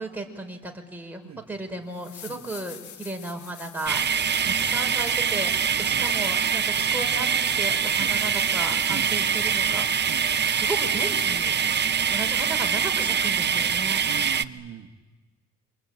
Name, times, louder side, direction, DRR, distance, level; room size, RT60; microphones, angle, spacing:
voice 1, 0.0-1.2 1.5-4.0 4.5-7.3 7.6-10.1 10.5-11.6 12.1-14.0, right 2 dB, 5° right, 2 dB, 5.0 m, -34 dB
sound 1, 1.4-1.5 1.9-11.7 14.5-14.6, left 9 dB, 75° left, 1.6 m, -44 dB
sound 2, 3.9-14.4, right 7 dB, 35° right, 0.8 m, -24 dB
voice 2, 5.7-6.1 6.9-7.1 8.0-8.2 8.9-9.1 10.1-10.3 14.1-15.0, right 10 dB, 65° right, 5 dB, 1.5 m, -41 dB
26.5 x 25.0 x 8.9 m, 1.3 s
cardioid pair, 90°, 30 cm